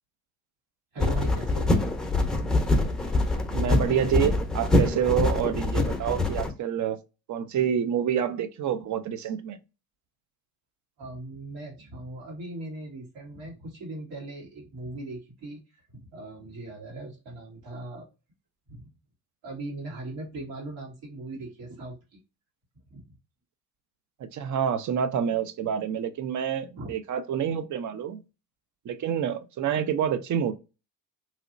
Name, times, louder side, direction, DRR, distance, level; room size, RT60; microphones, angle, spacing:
voice 1, 0.9-1.7 11.0-18.1 18.7-18.9 19.4-22.0 22.9-23.1 26.8-26.9, right 2 dB, 75° right, 1.9 m, -39 dB
sound 1, 1.0-6.5, left 2 dB, ahead, 0.8 m, -24 dB
voice 2, 3.5-7.0 7.3-9.6 24.2-28.2 28.8-30.5, right 8 dB, 40° right, 0.6 m, -27 dB
3.1 x 2.8 x 2.5 m
hypercardioid pair, 70°, 44 cm